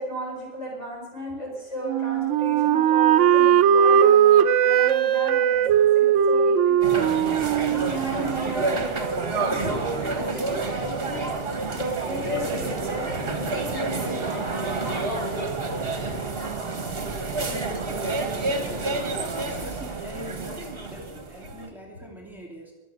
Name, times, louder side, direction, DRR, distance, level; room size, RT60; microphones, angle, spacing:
voice 1, 0.0-7.1 7.6-11.2 11.7-15.4, right 1 dB, 75° left, -2 dB, 6.4 m, -35 dB
Wind instrument woodwind instrument, 1.8-8.7, right 9 dB, 85° right, 1.0 m, -19 dB
sound 1, 6.8-21.7, right 3 dB, 50° right, 1.7 m, -29 dB
voice 2, 17.5-22.7, equal, ahead, 0 dB, 2.7 m, -43 dB
22.0 x 7.8 x 6.7 m, 1.1 s
omnidirectional pair, 1.2 m